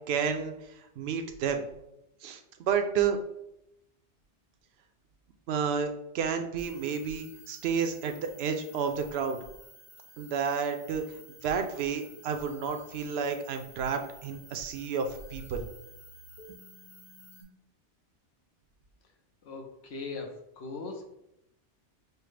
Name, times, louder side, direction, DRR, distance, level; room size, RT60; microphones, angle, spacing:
voice 1, 0.1-1.6 2.2-2.4 2.7-3.2 5.5-9.4 10.2-11.0 11.4-15.6, right 6 dB, 70° right, 6 dB, 0.8 m, -31 dB
sound 1, 6.6-17.4, equal, 30° left, 1.0 m, -53 dB
voice 2, 19.4-21.1, left 3 dB, 70° left, 3 dB, 0.9 m, -40 dB
5.5 x 2.1 x 3.2 m, 0.83 s
omnidirectional pair, 1.2 m